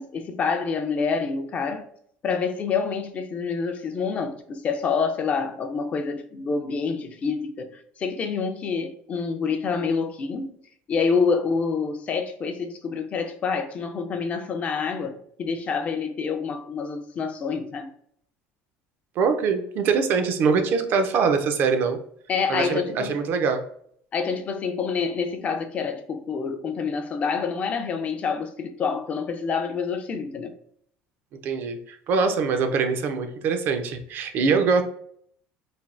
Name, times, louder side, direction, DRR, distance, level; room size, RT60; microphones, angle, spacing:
voice 1, 0.0-1.9 2.2-10.6 10.9-17.9 22.3-23.2 24.1-30.5 34.4-34.5, left 5 dB, 35° left, 0.3 m, -27 dB
voice 2, 19.2-22.0 22.5-23.6 31.4-34.8, right 5 dB, 50° right, 0.4 m, -23 dB
3.2 x 2.2 x 2.4 m
cardioid pair, 135°, 4 cm